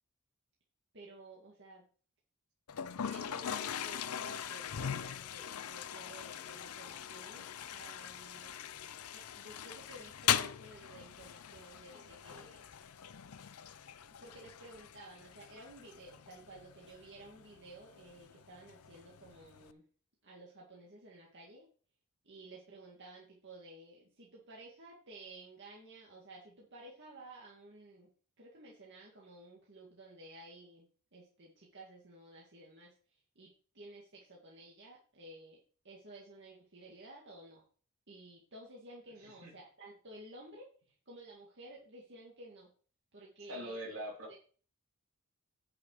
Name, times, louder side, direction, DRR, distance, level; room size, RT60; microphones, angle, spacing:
voice 1, 0.9-1.8 3.0-8.6 9.1-12.6 14.2-19.9 20.2-21.7 22.2-28.1 28.4-35.6 35.8-37.7 38.1-42.7 43.1-44.0 44.3-44.4, right 2 dB, 50° right, -3 dB, 2.1 m, -54 dB
Toilet flush, 2.7-19.7, left 9 dB, 75° left, 0.6 m, -41 dB
voice 2, 43.5-44.4, equal, 70° right, 0 dB, 3.1 m, -42 dB
10.0 x 5.6 x 5.0 m, 0.42 s
head